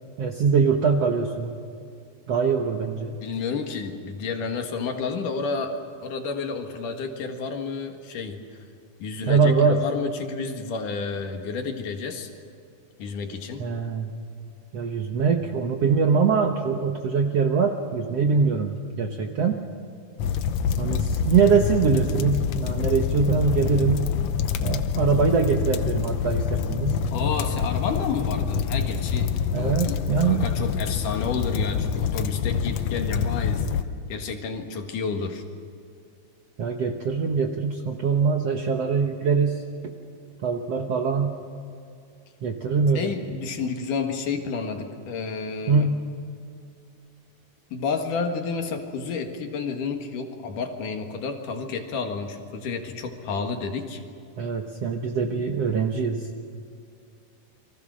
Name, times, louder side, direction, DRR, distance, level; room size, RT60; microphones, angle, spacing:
voice 1, 0.2-1.5 2.3-3.1 9.3-9.8 13.6-14.1 14.7-19.6 20.8-24.1 24.6-27.0 29.5-30.5 36.6-39.9 40.4-41.3 42.4-43.1 45.7-46.0 54.4-56.3, right 5 dB, 65° right, 3 dB, 1.7 m, -23 dB
voice 2, 3.2-8.4 9.0-12.3 13.0-13.7 27.1-30.0 30.2-33.7 34.1-35.4 42.9-45.9 47.7-54.0, left 5 dB, 65° left, 4 dB, 3.1 m, -30 dB
sound 1, 20.2-33.8, left 7 dB, 85° left, 1.4 m, -26 dB
29.5 x 24.0 x 6.3 m, 2.3 s
omnidirectional pair, 4.3 m